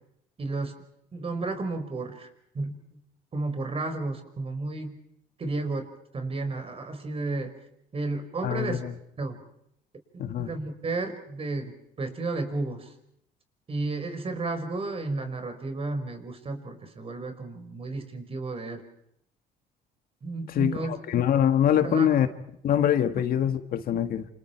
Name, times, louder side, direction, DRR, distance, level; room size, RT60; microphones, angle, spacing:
voice 1, 0.4-0.7 1.1-2.3 2.5-2.8 3.3-5.0 5.4-5.9 6.1-7.5 7.9-8.8 9.2-9.4 10.1-12.9 13.7-18.8 20.2-20.9 21.8-22.1, right 3 dB, 35° right, 8 dB, 5.0 m, -32 dB
voice 2, 8.4-8.9 10.2-10.5 20.5-22.3 22.6-24.3, left 10 dB, 60° left, 9 dB, 1.7 m, -24 dB
28.5 x 28.0 x 4.6 m, 0.73 s
cardioid pair, 110°, 17 cm